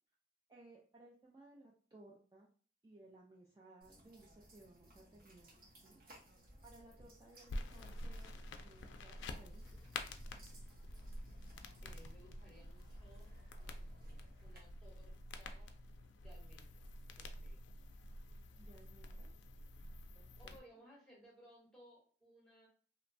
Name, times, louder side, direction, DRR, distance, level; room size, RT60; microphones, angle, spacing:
voice 1, 0.5-2.5 2.8-5.5 5.8-6.0 6.6-8.4 8.6-9.6 18.6-19.3 20.1-20.6, right 2 dB, 20° right, -3 dB, 0.3 m, -61 dB
sound 1, 3.8-14.6, equal, 50° right, 0.9 m, -60 dB
sound 2, 7.5-20.6, left 1 dB, 85° left, 0.4 m, -49 dB
voice 2, 11.8-13.3 13.6-15.7 16.2-17.7 20.4-22.7, equal, 5° left, -4 dB, 0.9 m, -63 dB
2.9 x 2.2 x 2.5 m, 0.43 s
head